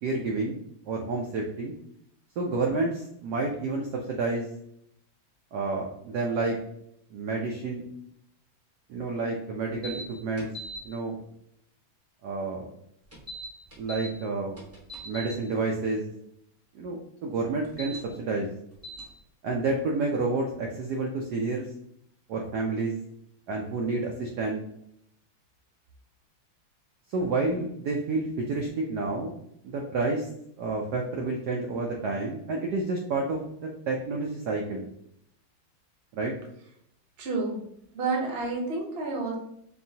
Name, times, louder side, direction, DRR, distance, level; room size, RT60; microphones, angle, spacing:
voice 1, 0.0-0.6 0.9-1.7 2.4-4.5 5.5-6.6 7.1-7.9 8.9-10.5 10.8-11.2 12.2-12.7 13.8-14.6 15.0-16.0 16.7-18.5 19.4-21.7 22.3-22.9 23.5-24.6 27.1-29.3 29.6-30.3 30.6-34.9 36.1-36.3, right 3 dB, 70° right, 0 dB, 1.0 m, -29 dB
sound 1, 9.8-10.0 10.4-10.8 13.1-14.1 14.6-15.3 17.6-18.0 18.8-19.0, right 1 dB, 15° right, 0.6 m, -39 dB
voice 2, 37.2-37.6 37.9-39.4, right 3 dB, 45° right, -1 dB, 0.8 m, -29 dB
4.5 x 3.0 x 2.7 m, 0.73 s
omnidirectional pair, 2.2 m